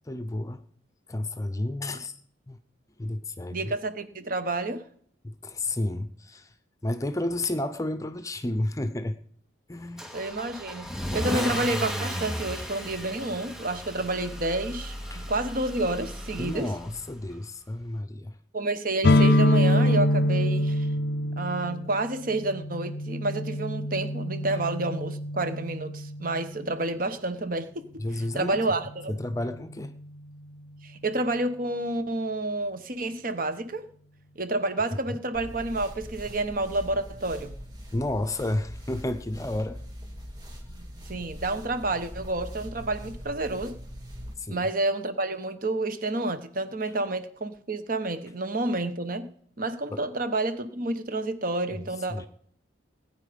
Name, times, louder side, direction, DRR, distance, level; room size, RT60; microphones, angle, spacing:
voice 1, 0.0-0.6 1.1-2.2 2.5-2.6 3.0-3.7 5.2-6.5 6.8-9.2 9.7-10.1 15.1-15.3 16.4-18.4 28.0-28.7 29.1-29.9 35.1-35.2 37.9-39.8 44.4-44.7 49.9-50.0 52.1-52.3, left 1 dB, 15° left, 0.7 m, -31 dB
voice 2, 3.5-4.8 10.1-16.7 18.5-20.9 21.4-28.0 28.3-29.1 30.8-33.9 34.4-37.5 40.7-43.7 44.5-49.3 49.6-52.3, right 2 dB, 50° right, 1.2 m, -29 dB
Car / Engine starting / Accelerating revving vroom, 10.0-17.1, equal, ahead, 2.3 m, -34 dB
sound 1, 19.0-26.7, left 1 dB, 60° left, 0.5 m, -25 dB
sound 2, 35.3-44.3, equal, 25° right, 3.4 m, -42 dB
19.0 x 9.2 x 5.2 m
head